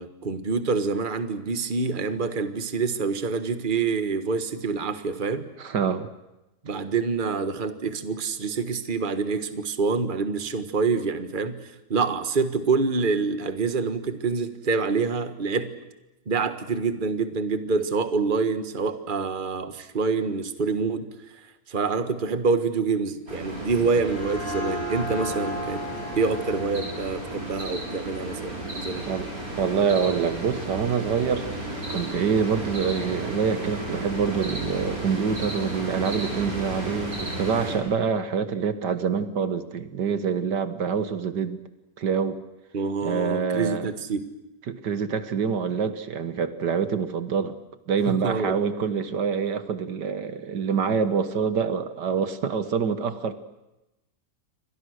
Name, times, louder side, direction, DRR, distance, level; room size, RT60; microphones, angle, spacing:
voice 1, 0.0-5.5 6.6-15.7 16.3-21.1 21.4-25.8 26.1-29.1 42.7-44.3 48.1-48.6, right 4 dB, 30° right, 10 dB, 1.6 m, -26 dB
voice 2, 5.6-6.1 29.1-29.3 29.6-31.5 31.9-41.6 42.0-42.4 43.0-43.9 44.7-47.6 47.9-53.3, right 6 dB, 75° right, 11 dB, 1.9 m, -26 dB
sound 1, 23.3-37.8, right 2 dB, 55° right, 7.0 m, -33 dB
sound 2, 23.9-29.2, left 1 dB, 35° left, 5.0 m, -36 dB
29.0 x 24.5 x 6.6 m, 0.98 s
omnidirectional pair, 1.9 m